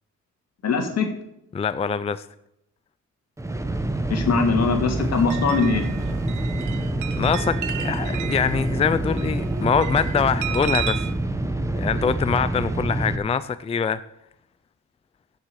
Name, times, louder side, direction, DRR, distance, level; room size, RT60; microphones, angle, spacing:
voice 1, 0.6-1.1 4.1-5.9, left 5 dB, 60° left, 3 dB, 2.5 m, -21 dB
voice 2, 1.5-2.3 7.1-11.0 11.8-14.0, left 6 dB, 20° left, 13 dB, 0.4 m, -24 dB
sound 1, 3.4-13.2, right 1 dB, 10° right, 1.1 m, -26 dB
sound 2, 5.0-11.1, right 11 dB, 80° right, 0.9 m, -34 dB
14.5 x 6.8 x 4.8 m, 0.82 s
cardioid pair, 90°, 30 cm